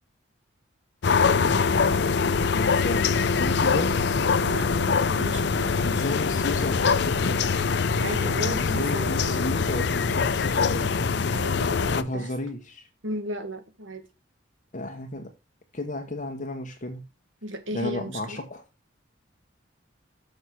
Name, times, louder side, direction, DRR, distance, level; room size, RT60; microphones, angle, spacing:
sound 1, 1.0-12.0, left 5 dB, 60° left, 0.6 m, -23 dB
voice 1, 2.5-3.9 5.8-7.5 8.5-11.0 11.9-12.8 14.7-15.3 15.7-17.0 17.7-18.6, left 1 dB, 40° left, 1.2 m, -32 dB
voice 2, 4.4-5.8 7.9-9.5 11.3-12.3 13.0-14.1 17.4-18.4, right 1 dB, 75° right, 1.8 m, -35 dB
6.5 x 5.7 x 6.3 m
head